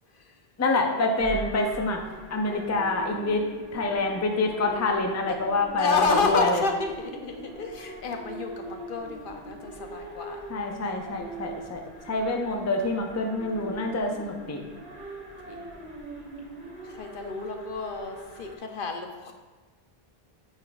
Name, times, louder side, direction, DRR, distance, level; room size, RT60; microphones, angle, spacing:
voice 1, 0.6-2.0 2.3-3.4 3.7-6.6 10.5-11.8 12.1-14.6, left 2 dB, 20° left, 2 dB, 0.5 m, -26 dB
sound 1, 1.2-18.6, right 2 dB, 80° right, 1.6 m, -42 dB
voice 2, 5.8-10.4 13.0-13.2 15.5-15.8 16.8-19.3, left 4 dB, 60° left, 4 dB, 0.8 m, -30 dB
9.3 x 5.5 x 2.3 m, 1.3 s
omnidirectional pair, 1.0 m